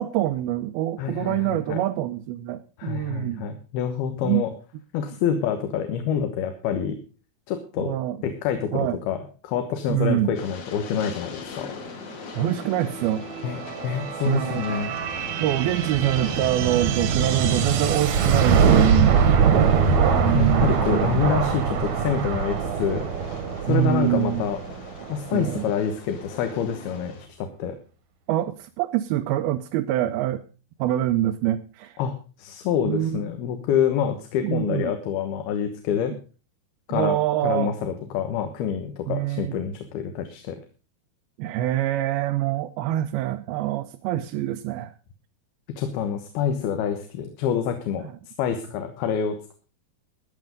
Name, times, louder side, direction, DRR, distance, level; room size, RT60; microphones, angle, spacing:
voice 1, 0.0-3.5 4.2-4.4 7.8-8.2 8.7-9.0 9.9-10.3 12.4-13.3 14.2-14.7 15.4-19.2 20.2-21.2 23.7-24.5 25.3-25.6 28.3-30.4 30.8-32.0 32.8-33.3 34.4-34.9 36.9-37.7 39.1-39.5 41.4-44.9 48.0-48.1, right 13 dB, 80° right, 7 dB, 2.6 m, -25 dB
voice 2, 1.0-1.8 2.8-4.5 4.9-7.0 7.5-8.0 8.2-9.2 9.4-11.7 13.4-15.0 19.8-20.0 20.3-23.0 23.7-24.6 25.1-27.8 32.0-36.1 36.9-37.2 37.4-40.6 45.8-48.1 48.4-49.4, left 8 dB, 80° left, 7 dB, 3.2 m, -27 dB
Train, 10.3-27.3, left 6 dB, 50° left, 2.1 m, -41 dB
sound 1, 12.1-25.6, right 6 dB, 60° right, 2.2 m, -23 dB
14.5 x 9.7 x 5.1 m, 0.36 s
omnidirectional pair, 4.4 m